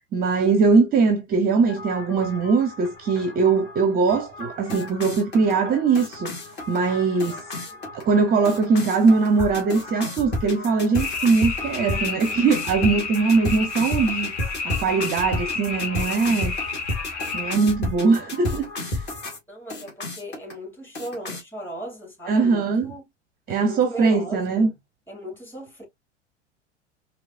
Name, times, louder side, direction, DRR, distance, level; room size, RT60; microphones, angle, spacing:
voice 1, 0.1-6.3 6.7-7.4 7.9-14.3 14.6-16.5 17.3-19.1 22.3-22.9 23.5-24.7, right 4 dB, 25° right, 0.8 m, -21 dB
sound 1, 1.7-19.4 19.7-20.5 20.9-21.4, left 1 dB, 30° left, 2.2 m, -33 dB
voice 2, 5.5-5.8 7.3-7.4 7.7-7.8 19.5-23.0 23.5-24.7 25.1-25.8, equal, 5° left, 3.1 m, -37 dB
sound 2, 10.9-17.6, left 5 dB, 65° left, 2.3 m, -31 dB
4.8 x 3.0 x 2.6 m
figure-of-eight pair, 85°, 36 cm